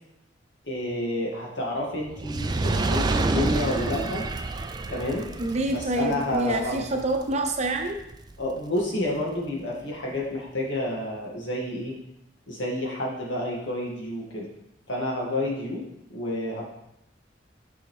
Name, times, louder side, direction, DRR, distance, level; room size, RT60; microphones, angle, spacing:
voice 1, 0.6-4.3 4.9-5.3 5.7-6.8 8.4-11.9 12.5-14.5 14.9-15.8 16.1-16.6, left 1 dB, 80° left, -3 dB, 1.8 m, -29 dB
Fire, 2.1-8.5 9.2-9.3, right 3 dB, 25° right, 0.3 m, -29 dB
voice 2, 5.4-8.0, right 1 dB, 40° right, 4 dB, 0.7 m, -27 dB
6.9 x 5.6 x 3.2 m, 0.81 s
head